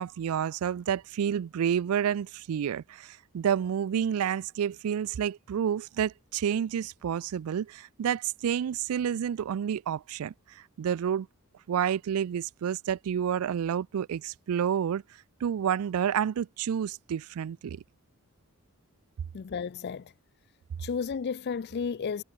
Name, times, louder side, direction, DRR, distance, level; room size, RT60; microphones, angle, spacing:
voice 1, 0.0-11.3 11.7-15.0 15.4-17.8, right 8 dB, 80° right, 0.3 m, -29 dB
voice 2, 19.3-20.1 20.8-22.2, left 6 dB, 50° left, 0.4 m, -33 dB
head